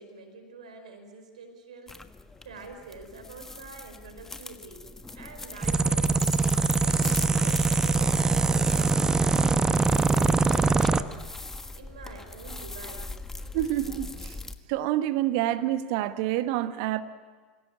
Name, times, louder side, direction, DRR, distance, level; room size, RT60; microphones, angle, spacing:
voice 1, 0.0-2.0 2.4-4.8 5.1-6.2 6.7-11.2 11.8-13.1, right 4 dB, 70° right, 5.0 m, -46 dB
sound 1, 1.9-14.6, left 2 dB, 10° left, 1.4 m, -41 dB
sound 2, 5.6-11.0, right 4 dB, 15° right, 0.9 m, -23 dB
voice 2, 13.5-14.3 14.7-17.0, right 13 dB, 55° right, 1.3 m, -27 dB
28.0 x 17.5 x 9.9 m
figure-of-eight pair, 80°, 4 cm